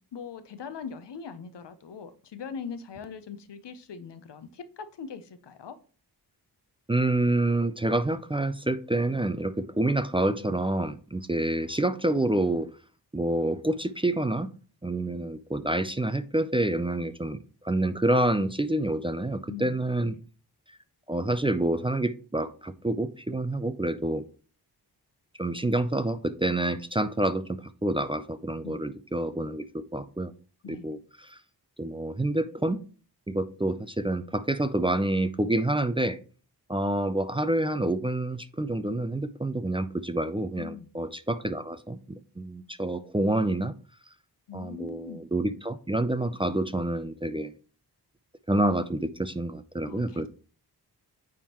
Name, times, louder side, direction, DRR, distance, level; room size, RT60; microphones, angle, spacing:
voice 1, 0.1-5.8 19.5-19.8 20.1-20.2 28.6-28.8 30.6-31.0 40.6-40.9 44.5-45.2 49.8-50.3, left 6 dB, 85° left, 0.7 m, -41 dB
voice 2, 6.9-12.7 13.1-14.5 14.8-17.4 17.6-20.2 21.1-24.2 25.4-30.3 30.7-31.4 31.8-32.8 33.3-36.2 36.7-43.7 44.5-47.5 48.5-50.3, right 1 dB, 15° right, 0.3 m, -28 dB
9.2 x 3.6 x 2.9 m
wide cardioid pair, 85°, 41 cm